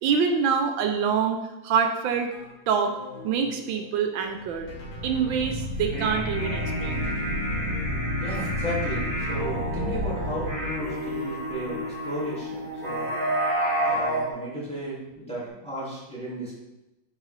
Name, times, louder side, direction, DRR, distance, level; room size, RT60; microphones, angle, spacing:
voice 1, 0.0-2.3 2.7-2.9 3.2-4.7 5.0-7.1, right 6 dB, 80° right, 5 dB, 1.3 m, -25 dB
sound 1, 2.1-7.9, left 1 dB, 60° left, 1.7 m, -46 dB
sound 2, 4.4-11.4, left 1 dB, 45° right, 1.3 m, -32 dB
sound 3, 5.8-14.3, right 1 dB, 20° left, 2.0 m, -30 dB
voice 2, 8.2-13.1 13.8-16.5, right 1 dB, 5° left, -6 dB, 1.9 m, -34 dB
7.5 x 4.8 x 3.2 m, 0.97 s
omnidirectional pair, 2.2 m